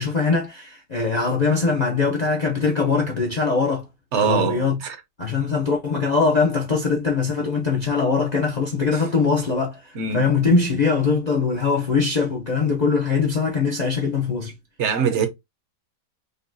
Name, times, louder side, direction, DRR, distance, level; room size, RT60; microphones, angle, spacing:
voice 1, 0.0-3.9 4.2-4.8 5.2-14.5, left 4 dB, 85° left, 0.3 m, -22 dB
voice 2, 4.1-5.0 8.9-9.0 10.0-10.3 14.8-15.3, right 6 dB, 60° right, 0.8 m, -23 dB
5.3 x 2.2 x 2.6 m
omnidirectional pair, 1.8 m